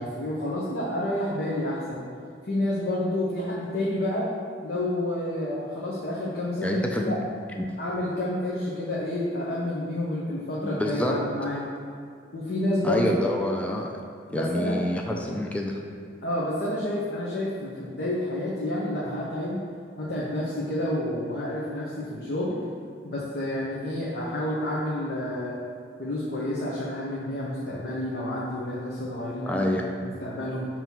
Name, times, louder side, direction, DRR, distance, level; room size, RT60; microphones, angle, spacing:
voice 1, 0.0-2.0 2.5-4.3 4.6-7.2 7.8-11.6 12.3-13.0 14.3-14.8 16.2-19.6 20.0-22.6 23.0-25.5 26.0-29.6 30.0-30.7, left 1 dB, 60° left, -6 dB, 0.8 m, -29 dB
voice 2, 6.6-7.2 7.6-7.7 10.6-11.2 12.8-13.9 14.3-15.8 29.5-29.9, left 1 dB, 5° left, 1 dB, 0.3 m, -27 dB
5.9 x 3.0 x 5.4 m, 2.2 s
head